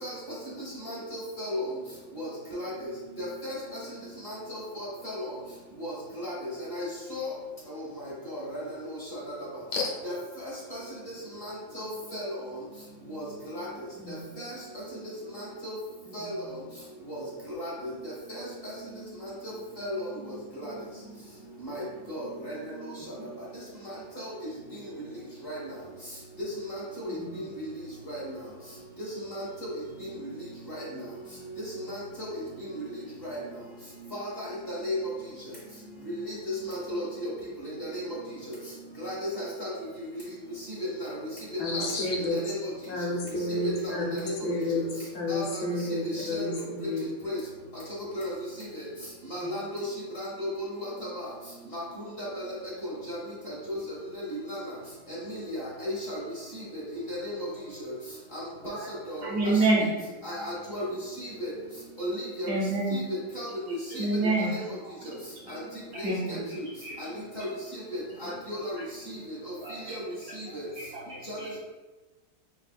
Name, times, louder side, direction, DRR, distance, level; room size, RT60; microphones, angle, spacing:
voice 1, 0.8-1.7 2.1-2.9 3.2-3.8 4.2-5.3 5.8-7.3 7.7-9.3 10.0-10.8 11.4-12.6 13.1-13.7 14.4-14.5 15.3-15.7 16.1-16.6 17.1-17.2 17.5-17.9 18.3-18.7 19.2-20.7 21.6-22.9 24.2-24.3 24.7-24.8 25.4-25.7 26.4-27.1 28.0-28.3 29.0-29.7 30.0-30.3 30.7-30.8 31.9-32.3 32.7-32.8 33.2-33.4 34.1-35.0 36.3-37.3 37.6-38.0 38.5-38.6 39.0-39.7 41.0-41.2 41.7-41.9 42.3-42.7 43.5-44.3 44.7-44.8 45.3-45.6 46.0-46.6 47.2-47.4 48.1-48.3 48.6-48.8 49.3-49.8 50.1-51.3 51.7-51.8 52.2-52.4 52.8-53.2 53.4-54.6 55.1-56.2 56.5-57.5 57.8-57.9 58.3-58.7 59.1-59.6 60.2-61.5 62.0-62.5 62.9-64.0 64.4-64.6 65.0-65.1 65.5-65.6 66.0-66.6 67.0-67.1 67.3-67.4 67.7-68.7 69.1-70.0 70.3-70.7 71.3-71.4, equal, 40° left, -7 dB, 0.9 m, -35 dB
voice 2, 16.2-16.5 23.2-23.3 27.0-27.4 41.6-42.4 42.9-47.0 49.4-49.5, left 2 dB, 80° left, -1 dB, 1.5 m, -31 dB
voice 3, 59.2-59.9 62.5-63.0 63.9-64.5 65.5-65.6 65.9-66.4 66.8-67.0 68.2-68.3 69.6-70.0 70.8-71.6, right 2 dB, 70° right, -4 dB, 1.0 m, -28 dB
4.0 x 3.4 x 2.2 m, 1.2 s
omnidirectional pair, 2.2 m